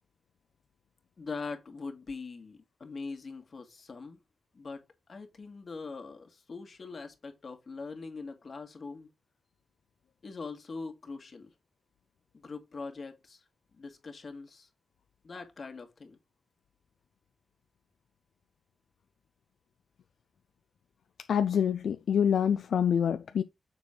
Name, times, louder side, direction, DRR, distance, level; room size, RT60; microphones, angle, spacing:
voice 1, 1.2-4.2 4.5-4.8 5.1-9.1 10.2-11.5 12.3-14.7 15.2-16.2, left 4 dB, 60° left, 2.1 m, -42 dB
voice 2, 21.3-23.4, left 8 dB, 85° left, 0.4 m, -26 dB
6.8 x 4.2 x 3.7 m
cardioid pair, 55°, 0 cm